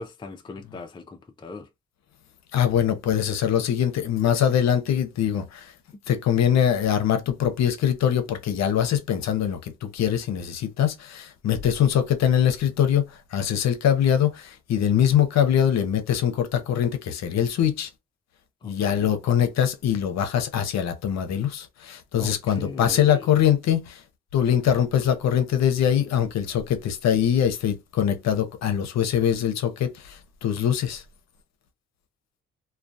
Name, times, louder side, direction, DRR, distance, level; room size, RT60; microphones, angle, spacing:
voice 1, 0.0-1.7 18.6-19.1 22.2-23.2, left 3 dB, 15° left, 0.4 m, -39 dB
voice 2, 2.5-5.7 6.1-17.9 18.6-24.0 24.3-31.0, left 9 dB, 60° left, 0.6 m, -23 dB
2.3 x 2.2 x 2.6 m
cardioid pair, 90°, 30 cm